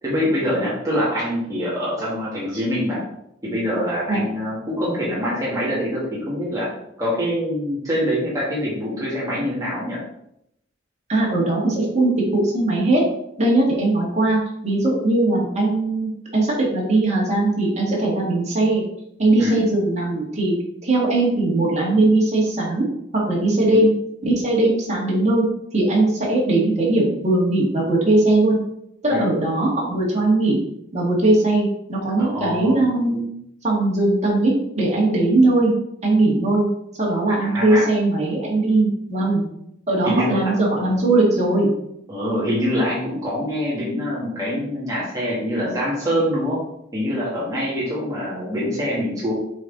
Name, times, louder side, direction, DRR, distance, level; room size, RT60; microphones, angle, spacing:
voice 1, 0.0-3.0 3.4-6.7 7.0-10.0 19.4-19.6 23.7-23.8 29.1-29.3 32.2-32.8 37.4-37.9 38.5-38.6 40.0-40.5 42.1-46.6 46.9-49.3, equal, 20° right, -8 dB, 1.8 m, -24 dB
voice 2, 11.1-13.0 13.4-18.8 19.2-20.6 20.8-22.8 23.1-23.9 24.2-25.5 25.7-28.6 29.0-30.6 30.9-33.2 33.6-35.7 36.0-36.7 37.0-39.4 39.9-41.7, right 2 dB, 35° right, -4 dB, 2.0 m, -19 dB
7.1 x 3.9 x 4.0 m, 0.77 s
head